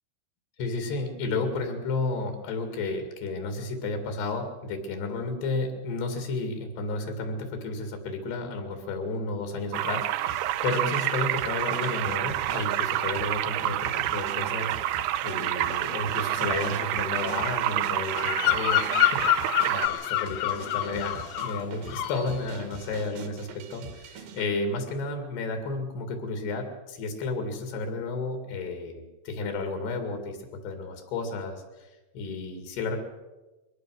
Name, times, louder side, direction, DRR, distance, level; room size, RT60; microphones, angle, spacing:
voice 1, 0.6-31.9 32.1-33.0, left 3 dB, 90° left, 5 dB, 4.4 m, -32 dB
sound 1, 9.7-19.9, right 14 dB, 90° right, 2.9 m, -28 dB
sound 2, 10.3-24.5, right 5 dB, 70° right, 3.2 m, -43 dB
Bird vocalization bird call bird song, 18.1-21.6 21.9-22.3, left 15 dB, 75° left, 2.1 m, -26 dB
22.5 x 18.0 x 6.4 m, 1.1 s
omnidirectional pair, 4.6 m